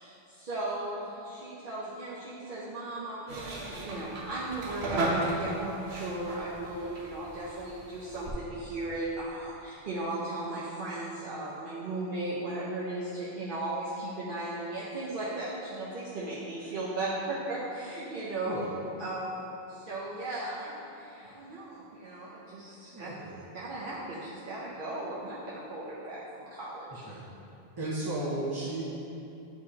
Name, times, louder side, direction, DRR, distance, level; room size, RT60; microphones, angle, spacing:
voice 1, 0.0-18.6 19.0-19.4 19.7-23.1 23.5-27.0, right 2 dB, 55° right, -8 dB, 0.9 m, -36 dB
sound 1, 3.3-8.3, right 2 dB, 90° right, 1.1 m, -35 dB
voice 2, 22.9-23.4 27.1-27.2 27.8-28.8, right 2 dB, 25° right, -7 dB, 0.6 m, -34 dB
9.0 x 4.7 x 2.9 m, 2.8 s
omnidirectional pair, 1.0 m